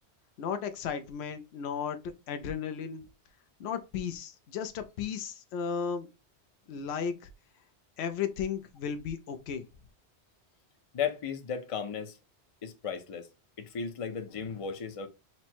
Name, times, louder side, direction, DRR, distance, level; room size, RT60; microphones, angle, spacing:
voice 1, 0.4-2.0 2.3-3.0 3.6-6.1 6.7-7.1 8.0-9.6, left 7 dB, 75° left, 0.9 m, -34 dB
voice 2, 10.9-12.2 12.6-13.3 13.6-15.1, left 7 dB, 40° left, 0.5 m, -35 dB
4.3 x 2.0 x 4.3 m
omnidirectional pair, 1.1 m